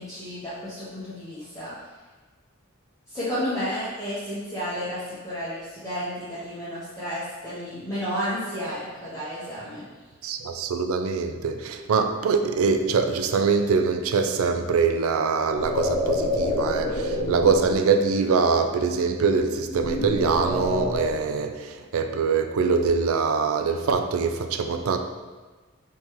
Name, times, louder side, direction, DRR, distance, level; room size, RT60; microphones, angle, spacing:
voice 1, 0.0-1.7 3.1-9.9, equal, 15° left, -12 dB, 0.9 m, -32 dB
voice 2, 10.2-25.0, right 5 dB, 85° right, 7 dB, 0.4 m, -23 dB
sound 1, 15.4-17.8 19.6-21.2, left 1 dB, 45° left, 1.1 m, -27 dB
5.3 x 3.2 x 3.0 m, 1.3 s
head